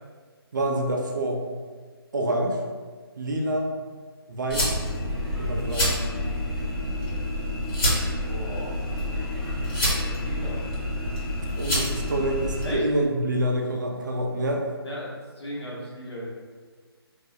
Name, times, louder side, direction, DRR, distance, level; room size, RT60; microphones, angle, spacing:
voice 1, 0.5-1.4 2.1-2.6 3.2-3.7 4.3-4.6 5.4-5.9 11.6-14.7, right 1 dB, 50° right, 1 dB, 0.4 m, -26 dB
sound 1, 4.5-12.8, left 1 dB, 60° left, 1.1 m, -27 dB
voice 2, 8.0-8.8 10.0-10.6 12.6-12.8 14.8-16.3, equal, 85° left, -5 dB, 0.9 m, -37 dB
2.3 x 2.0 x 2.6 m, 1.5 s
hypercardioid pair, 170°, 13 cm